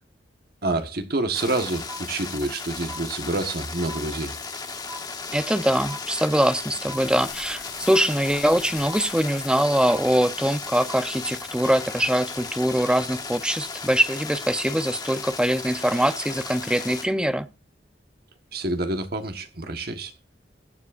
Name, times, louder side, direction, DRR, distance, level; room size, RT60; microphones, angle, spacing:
voice 1, 0.6-4.3 18.5-20.1, right 2 dB, 60° right, 1.4 m, -27 dB
sound 1, 1.3-17.0, left 4 dB, 25° left, 1.1 m, -36 dB
sound 2, 1.9-2.6 2.9-3.6 3.9-4.6 4.9-5.6 5.9-6.6 6.9-7.6 7.9-8.6 8.9-9.6 9.9-10.6 10.9-11.6, equal, 25° right, 4.6 m, -43 dB
voice 2, 5.3-17.5, equal, 5° right, 0.7 m, -23 dB
sound 3, 6.9-11.9, left 9 dB, 65° left, 5.9 m, -43 dB
21.5 x 7.4 x 2.6 m
head